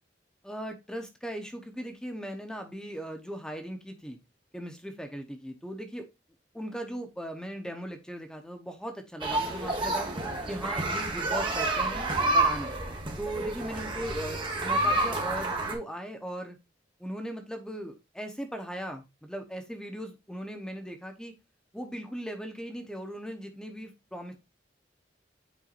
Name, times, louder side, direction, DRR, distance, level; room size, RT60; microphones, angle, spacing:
voice 1, 0.4-4.2 4.5-6.1 6.5-10.1 10.5-12.1 12.3-12.7 13.2-16.6 17.0-21.3 21.7-24.4, equal, 5° left, 5 dB, 0.9 m, -38 dB
sound 1, 9.2-15.7, right 2 dB, 30° right, 1.4 m, -29 dB
8.7 x 4.5 x 2.5 m, 0.24 s
head